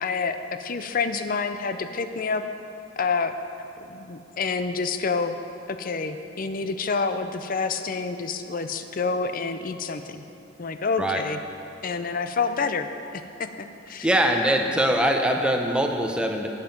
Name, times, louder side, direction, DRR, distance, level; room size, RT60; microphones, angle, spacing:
voice 1, 0.0-2.4 3.0-3.3 3.8-5.4 5.7-10.2 10.6-11.4 11.8-13.2 13.9-14.1, left 4 dB, 50° left, 9 dB, 0.5 m, -28 dB
voice 2, 14.0-16.5, right 1 dB, 5° right, 2 dB, 0.7 m, -22 dB
15.0 x 5.8 x 5.2 m, 2.8 s
head